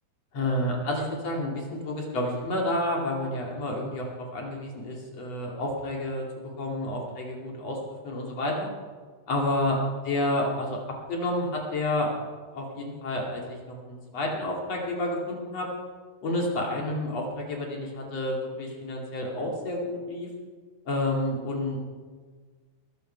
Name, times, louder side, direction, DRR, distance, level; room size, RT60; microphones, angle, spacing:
voice 1, 0.3-7.8 8.0-8.7 9.3-9.8 10.1-10.8 11.1-12.1 12.5-15.7 16.2-20.3 20.9-21.8, left 1 dB, 40° left, -1 dB, 3.0 m, -30 dB
21.0 x 13.5 x 4.6 m, 1.5 s
omnidirectional pair, 5.5 m